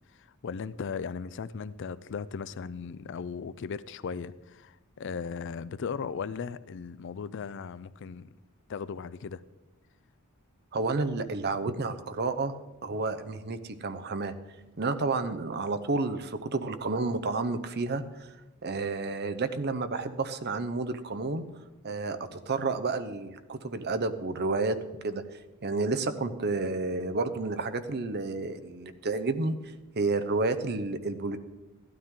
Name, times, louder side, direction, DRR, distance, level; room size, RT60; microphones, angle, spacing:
voice 1, 0.2-8.4 8.7-9.4, left 6 dB, 60° left, 16 dB, 0.4 m, -37 dB
voice 2, 10.7-12.5 12.8-14.3 14.8-18.3 18.6-21.4 21.8-24.8 25.0-25.2 25.6-31.4, right 3 dB, 50° right, 10 dB, 0.8 m, -30 dB
15.0 x 12.5 x 3.8 m, 1.1 s
head